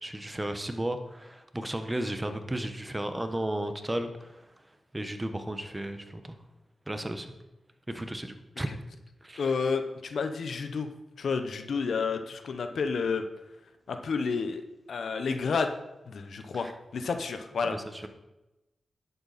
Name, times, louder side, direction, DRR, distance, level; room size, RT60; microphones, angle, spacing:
voice 1, 0.0-6.4 6.9-7.3 7.9-8.7 9.2-9.5 16.5-16.7 17.6-18.1, right 1 dB, 20° right, 8 dB, 1.3 m, -34 dB
voice 2, 9.4-10.9 11.2-13.2 13.9-14.6 14.9-15.7 16.1-17.8, left 5 dB, 75° left, 7 dB, 1.0 m, -30 dB
11.0 x 8.1 x 4.3 m, 0.97 s
cardioid pair, 50°, 0 cm